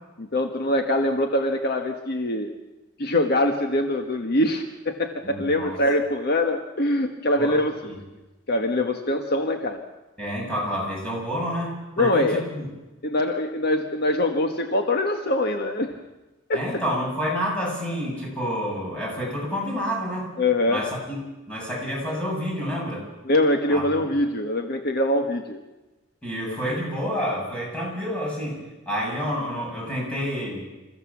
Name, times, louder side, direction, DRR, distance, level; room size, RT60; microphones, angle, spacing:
voice 1, 0.2-2.5 3.0-7.7 8.5-9.8 12.0-12.4 13.0-15.9 16.5-16.6 20.4-20.8 23.2-25.6 26.5-26.6, left 1 dB, 55° left, 5 dB, 1.3 m, -23 dB
voice 2, 5.2-5.8 7.4-7.6 7.8-7.9 10.2-12.7 16.5-20.3 20.7-21.2 21.5-23.0 23.7-23.8 26.2-30.6, equal, 5° left, -4 dB, 7.7 m, -29 dB
27.5 x 15.0 x 7.2 m, 1.1 s
head